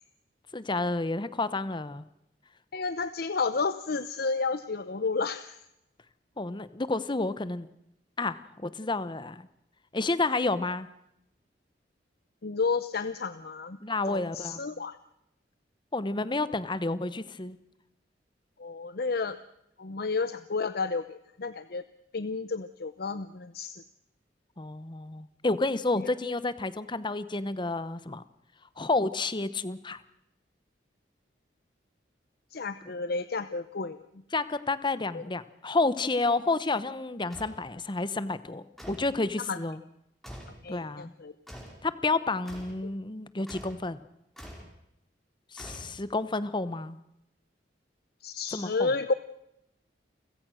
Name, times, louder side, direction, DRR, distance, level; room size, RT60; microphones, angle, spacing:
voice 1, 0.5-2.1 6.4-7.7 8.2-9.5 9.9-10.9 13.8-14.6 15.9-17.6 24.6-28.2 28.8-30.0 34.3-39.8 40.7-41.1 41.8-44.0 45.5-47.0 48.5-48.9, left 3 dB, 25° left, 14 dB, 1.0 m, -30 dB
voice 2, 2.7-5.6 12.4-13.8 14.1-15.0 18.6-19.4 19.8-21.8 22.1-23.8 26.0-26.1 32.5-34.0 35.1-35.2 39.5-39.6 40.6-41.3 42.8-42.9 48.2-49.1, left 4 dB, 60° left, 12 dB, 0.8 m, -31 dB
sound 1, 37.3-37.6 38.8-39.2 40.2-40.6 41.5-41.8 42.5-42.8 43.5-43.8 44.4-44.7 45.6-46.2, equal, ahead, 4.9 m, -45 dB
29.5 x 16.0 x 6.4 m, 0.82 s
head